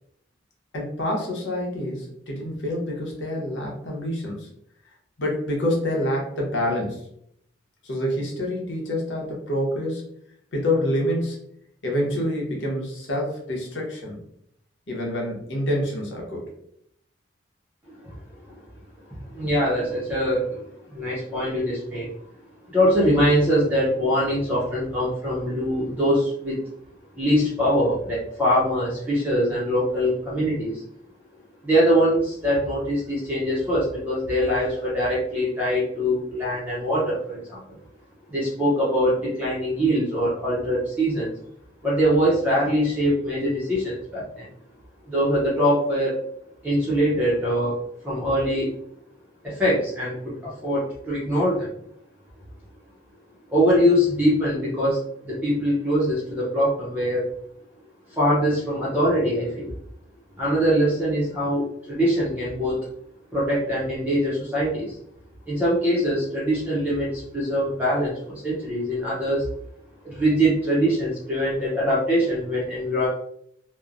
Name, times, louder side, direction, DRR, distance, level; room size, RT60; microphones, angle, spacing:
voice 1, 0.7-4.5 5.2-7.1 7.8-10.0 10.5-11.4 11.8-14.2 14.9-16.5, left 1 dB, 80° left, -2 dB, 0.8 m, -27 dB
voice 2, 19.1-22.1 22.7-26.6 27.1-30.8 31.6-37.8 38.3-41.3 41.8-44.5 45.1-46.2 46.6-47.8 48.0-48.7 49.4-51.7 53.5-57.3 58.1-59.7 60.4-62.8 63.3-65.0 65.5-69.5 70.0-73.1, equal, 10° right, -8 dB, 0.6 m, -23 dB
2.9 x 2.1 x 2.4 m, 0.71 s
head